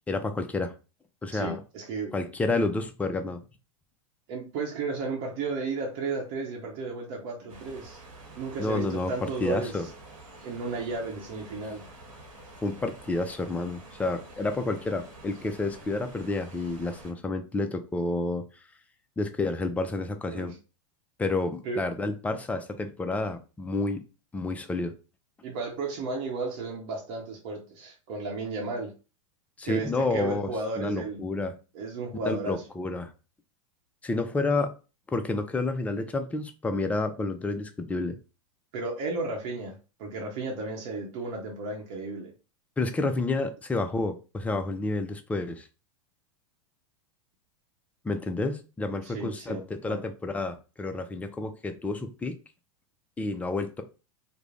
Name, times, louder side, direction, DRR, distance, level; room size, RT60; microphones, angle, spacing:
voice 1, 0.1-0.7 1.2-1.6 2.1-3.4 8.6-9.9 12.6-18.4 19.2-20.5 21.2-24.0 24.3-24.9 29.6-31.5 32.2-33.1 34.0-34.7 35.1-38.2 42.8-45.7 48.0-52.4 53.2-53.8, left 2 dB, 10° left, 7 dB, 0.3 m, -30 dB
voice 2, 1.3-2.1 2.5-2.7 4.3-8.0 8.4-9.9 10.4-11.8 20.3-20.5 21.6-21.8 25.4-28.9 29.6-31.2 31.7-32.6 38.7-42.3 49.0-50.0, right 3 dB, 50° right, 0 dB, 0.7 m, -34 dB
sound 1, 7.5-17.1, right 2 dB, 80° right, 1.0 m, -48 dB
2.4 x 2.0 x 3.1 m, 0.32 s
hypercardioid pair, 110°, 17 cm